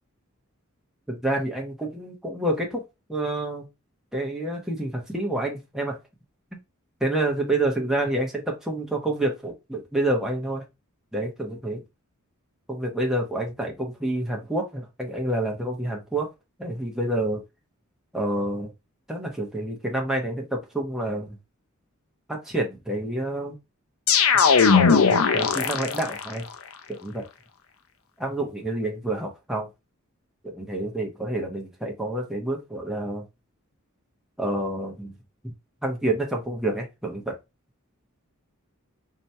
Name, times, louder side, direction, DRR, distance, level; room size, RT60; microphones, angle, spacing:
voice 1, 1.1-2.8 3.1-3.7 4.1-6.0 7.0-10.6 11.1-11.8 12.7-16.3 16.6-17.4 18.1-18.7 19.1-21.4 22.3-23.6 24.7-26.4 26.9-27.2 28.2-29.7 30.4-33.2 34.4-35.2 35.4-35.5 35.8-37.3, right 1 dB, ahead, 1.0 m, -28 dB
sound 1, 24.1-26.3, left 6 dB, 75° left, 0.6 m, -19 dB
3.1 x 2.8 x 4.4 m
head